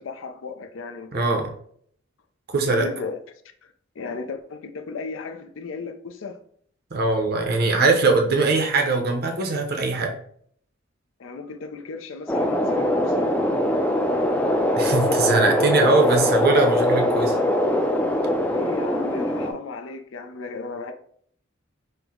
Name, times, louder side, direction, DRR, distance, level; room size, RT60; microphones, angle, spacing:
voice 1, 0.0-1.3 2.7-3.2 3.6-6.4 11.2-13.3 18.5-20.9, left 4 dB, 75° left, 0.5 m, -35 dB
voice 2, 1.1-1.5 2.5-2.9 6.9-10.1 14.8-17.4, right 3 dB, 50° right, 0.6 m, -21 dB
sound 1, 12.3-19.5, left 1 dB, 10° left, 0.3 m, -22 dB
4.4 x 2.0 x 3.6 m
head